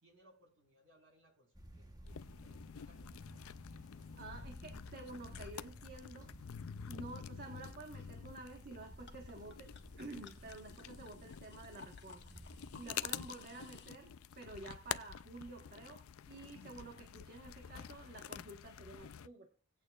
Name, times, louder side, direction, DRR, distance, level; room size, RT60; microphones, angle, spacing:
voice 1, 0.0-3.7, equal, 60° right, 0 dB, 5.0 m, -68 dB
sound 1, 1.5-13.2, equal, 15° right, 1.1 m, -56 dB
sound 2, 2.1-19.3, left 9 dB, 70° left, 0.4 m, -48 dB
voice 2, 4.2-6.3 6.8-9.7 10.0-12.2 12.5-16.0 16.3-19.5, right 2 dB, 45° right, 2 dB, 1.5 m, -50 dB
sound 3, 8.9-13.9, left 4 dB, 50° left, 1.5 m, -59 dB
18.5 x 8.7 x 2.4 m, 0.37 s
head